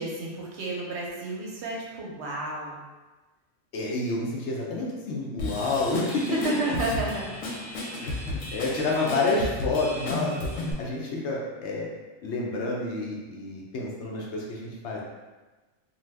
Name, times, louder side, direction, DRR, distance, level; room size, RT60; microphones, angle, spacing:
voice 1, 0.0-2.8 6.4-7.3, right 2 dB, 65° right, -2 dB, 0.8 m, -31 dB
voice 2, 3.7-6.2 8.0-11.9 12.2-15.0, left 3 dB, 65° left, -3 dB, 0.8 m, -29 dB
Drum kit / Drum, 5.4-10.7, left 1 dB, 90° left, 1.0 m, -34 dB
2.8 x 2.2 x 3.2 m, 1.2 s
omnidirectional pair, 1.3 m